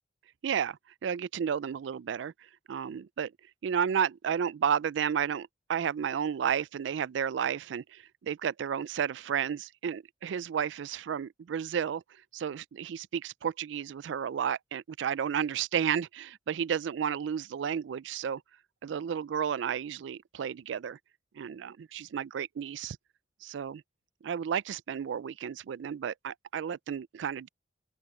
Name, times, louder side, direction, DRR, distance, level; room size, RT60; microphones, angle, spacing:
voice 1, 0.4-2.3 2.7-3.3 3.6-12.0 12.3-18.4 18.8-21.0 21.4-23.0 23.4-23.8 24.2-27.5, right 8 dB, 80° right, 0.3 m, -32 dB
open air
head